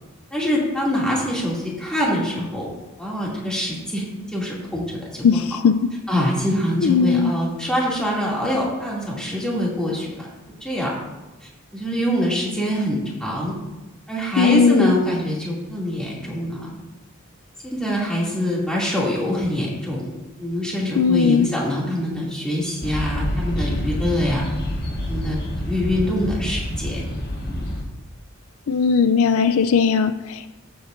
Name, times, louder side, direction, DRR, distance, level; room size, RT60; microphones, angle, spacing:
voice 1, 0.3-2.7 3.0-4.8 5.1-5.4 6.1-10.3 10.6-10.9 11.4-13.5 14.1-16.7 17.6-20.1 20.4-24.5 25.1-25.4 25.6-27.0 27.5-27.6, equal, 5° left, -5 dB, 2.5 m, -24 dB
voice 2, 5.2-5.9 6.8-7.3 14.4-14.9 21.0-21.5 28.7-30.5, left 6 dB, 75° left, 11 dB, 0.4 m, -18 dB
sound 1, 22.8-27.8, equal, 45° left, 1.6 m, -27 dB
15.0 x 7.9 x 2.6 m, 1.1 s
head